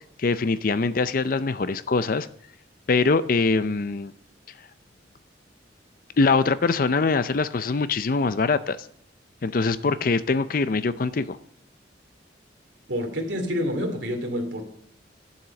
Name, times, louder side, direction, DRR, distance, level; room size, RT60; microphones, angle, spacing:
voice 1, 0.2-2.3 2.9-4.1 6.2-8.8 9.4-11.4, left 4 dB, 50° left, 0.5 m, -23 dB
voice 2, 12.9-14.6, equal, 80° right, 2.7 m, -28 dB
11.5 x 7.3 x 6.9 m
head